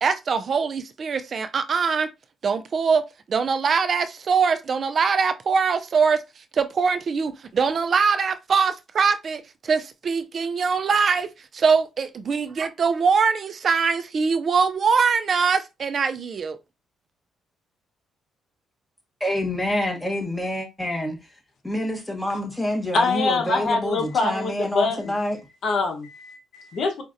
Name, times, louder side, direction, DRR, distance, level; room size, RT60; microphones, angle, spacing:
voice 1, 0.0-2.1 2.4-6.2 6.5-16.6, right 5 dB, 50° right, 0.3 m, -22 dB
voice 2, 19.2-21.2 21.6-25.4, left 1 dB, 5° left, 1.3 m, -27 dB
voice 3, 22.9-25.1 25.6-27.0, left 3 dB, 60° left, 0.9 m, -24 dB
5.0 x 2.5 x 2.5 m
cardioid pair, 90°, 0 cm